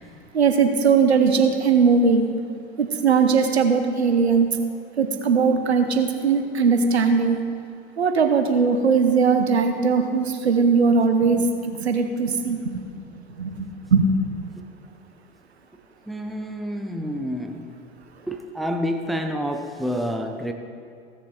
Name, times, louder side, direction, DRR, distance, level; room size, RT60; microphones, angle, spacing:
voice 1, 0.3-2.3 2.8-4.5 5.0-7.4 8.0-12.8 13.4-13.5 13.9-14.1, right 5 dB, 90° right, 7 dB, 1.1 m, -19 dB
voice 2, 16.1-17.8 18.3-20.5, equal, ahead, 4 dB, 0.8 m, -28 dB
16.0 x 6.8 x 5.0 m, 2.5 s
hypercardioid pair, 85°, 31 cm